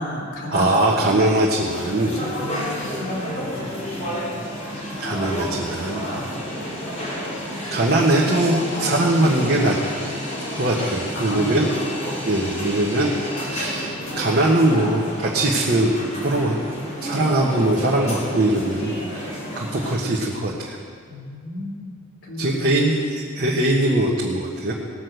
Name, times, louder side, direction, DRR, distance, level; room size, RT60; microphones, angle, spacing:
voice 1, 0.0-1.3 2.0-4.5 6.1-6.5 7.9-8.1 11.1-12.0 21.1-23.1, equal, 80° left, -2 dB, 2.8 m, -33 dB
voice 2, 0.5-2.2 5.0-6.1 7.7-9.8 10.6-11.7 12.2-13.1 13.4-15.9 16.2-16.6 17.0-20.8 22.4-24.7, right 1 dB, 45° right, -3 dB, 1.3 m, -21 dB
sound 1, 1.6-20.0, equal, 35° left, 3.5 m, -30 dB
18.5 x 6.4 x 7.9 m, 2.1 s
head